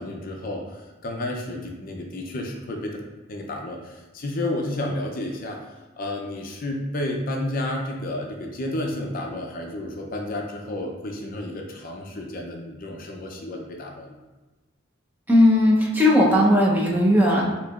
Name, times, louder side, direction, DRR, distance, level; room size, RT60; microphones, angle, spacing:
voice 1, 0.0-3.0 3.3-5.6 6.0-14.2, left 1 dB, 45° left, 1 dB, 0.5 m, -31 dB
voice 2, 15.3-17.4, left 1 dB, 10° right, -4 dB, 0.7 m, -17 dB
6.3 x 2.9 x 2.4 m, 1.1 s
head